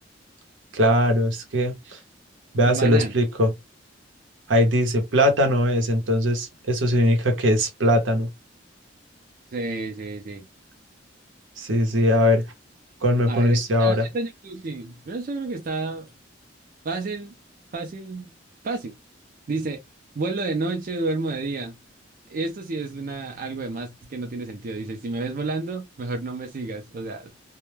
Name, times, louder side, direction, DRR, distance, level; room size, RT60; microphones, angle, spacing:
voice 1, 0.7-2.0 2.5-3.5 4.5-8.3 11.6-12.4 13.0-14.0, equal, 85° right, 0.8 m, -20 dB
voice 2, 2.7-3.1 9.5-10.5 13.3-16.1 16.8-17.3 17.7-18.3 18.6-18.9 19.5-19.8 20.2-21.8 22.3-27.3, right 3 dB, 50° right, 0.4 m, -30 dB
2.1 x 2.1 x 3.1 m
head